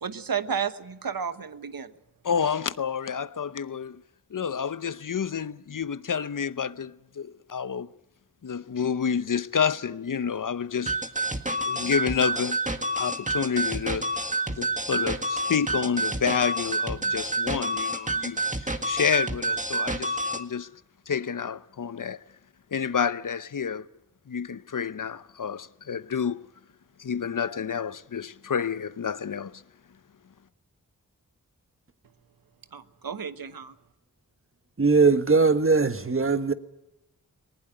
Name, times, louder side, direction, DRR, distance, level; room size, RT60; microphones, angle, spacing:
voice 1, 0.0-1.9 32.7-33.7, right 7 dB, 80° right, 1.2 m, -32 dB
voice 2, 2.2-4.0 4.3-7.9 8.4-11.0 11.6-12.6 13.0-14.1 14.5-20.7 21.1-22.2 22.7-23.9 24.3-26.4 27.0-29.6, left 7 dB, 65° left, 0.8 m, -29 dB
sound 1, 10.9-20.4, right 1 dB, 20° right, 1.9 m, -28 dB
voice 3, 34.8-36.5, right 4 dB, 40° right, 1.4 m, -20 dB
19.5 x 19.5 x 9.0 m
wide cardioid pair, 55°, 34 cm